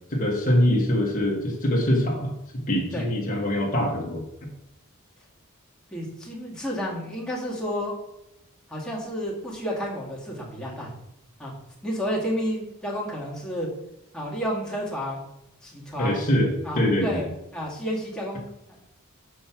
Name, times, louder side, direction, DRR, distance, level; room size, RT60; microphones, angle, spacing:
voice 1, 0.1-2.3 2.7-4.2 16.0-17.2, left 1 dB, 40° left, -1 dB, 1.4 m, -23 dB
voice 2, 5.9-8.0 8.7-10.9 11.4-11.5 11.8-13.7 14.1-15.2 15.6-16.2 16.6-17.3 17.5-18.8, equal, 5° left, -4 dB, 1.9 m, -31 dB
5.6 x 5.4 x 5.7 m, 0.84 s
head